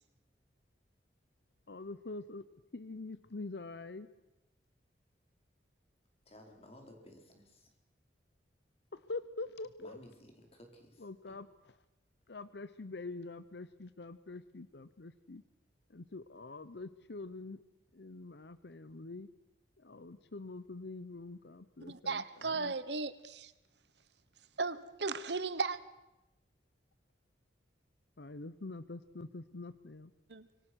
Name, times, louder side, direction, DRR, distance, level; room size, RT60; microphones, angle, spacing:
voice 1, 1.7-2.4 2.7-4.1 8.9-10.0 11.0-11.5 12.3-15.4 15.9-17.6 17.9-19.3 19.8-22.7 28.2-30.1, left 3 dB, 65° left, 0.8 m, -45 dB
voice 2, 6.2-7.7 9.8-11.4, left 1 dB, 35° left, 4.7 m, -56 dB
voice 3, 21.9-23.5 24.6-25.8 30.3-30.5, right 4 dB, 70° right, 1.2 m, -36 dB
26.0 x 23.5 x 6.4 m
head